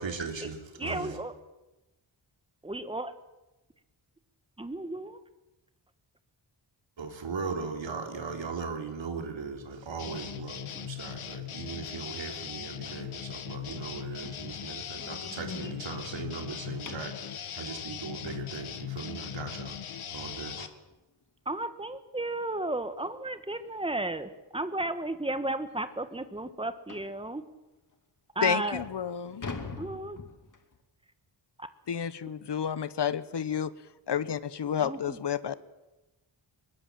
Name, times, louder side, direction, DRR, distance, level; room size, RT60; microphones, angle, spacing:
voice 1, 0.0-1.1 7.0-19.8 20.1-20.7, right 5 dB, 65° right, 4 dB, 3.7 m, -38 dB
voice 2, 0.8-1.3 2.6-3.1 4.6-5.2 21.4-27.4 28.3-28.8 29.8-30.2 31.6-31.7 34.8-35.2, right 2 dB, 10° right, 10 dB, 1.5 m, -33 dB
sound 1, 10.0-20.7, left 9 dB, 80° left, 1.7 m, -39 dB
sound 2, 14.2-17.3 20.1-20.2 20.7-20.9 21.2-21.3 21.8-21.9 23.0-23.1 23.5-23.7 24.3-24.4 24.8-24.9 25.4-25.5 26.9-27.2 27.9-28.0 28.5-30.8, left 4 dB, 40° left, 2.4 m, -44 dB
voice 3, 28.4-29.4 31.9-33.7 34.1-35.5, left 8 dB, 55° left, 15 dB, 1.2 m, -30 dB
24.0 x 21.5 x 7.6 m, 1.0 s
wide cardioid pair, 145°, 48 cm